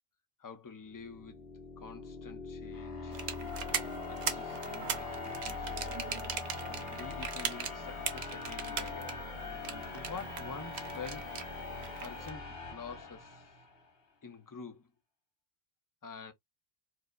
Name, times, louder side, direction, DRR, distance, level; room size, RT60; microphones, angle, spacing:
voice 1, 0.4-1.5 1.8-6.1 6.3-9.3 9.9-11.4 12.0-13.5 14.2-14.9 16.0-16.3, left 5 dB, 25° left, 0.5 m, -48 dB
sound 1, 0.9-13.8, left 4 dB, 65° left, 1.2 m, -42 dB
sound 2, 3.1-12.3, right 6 dB, 50° right, 0.7 m, -40 dB
4.7 x 2.1 x 2.4 m
omnidirectional pair, 1.0 m